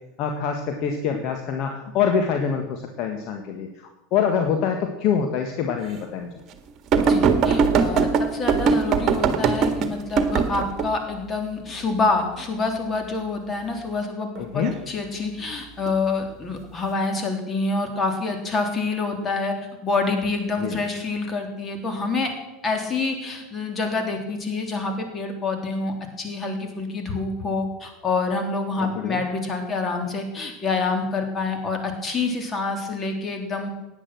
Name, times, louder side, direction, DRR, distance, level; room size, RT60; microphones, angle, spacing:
voice 1, 0.2-3.7 4.1-6.3 14.4-14.7 20.6-20.8 28.8-29.2, left 7 dB, 45° left, 4 dB, 1.6 m, -25 dB
voice 2, 6.9-22.3 22.6-33.7, left 3 dB, 25° left, 4 dB, 3.4 m, -27 dB
sound 1, 6.9-10.9 14.4-14.7 15.9-16.0, right 5 dB, 40° right, 1.7 m, -20 dB
17.0 x 10.0 x 6.2 m, 1.0 s
figure-of-eight pair, 80°, 0 cm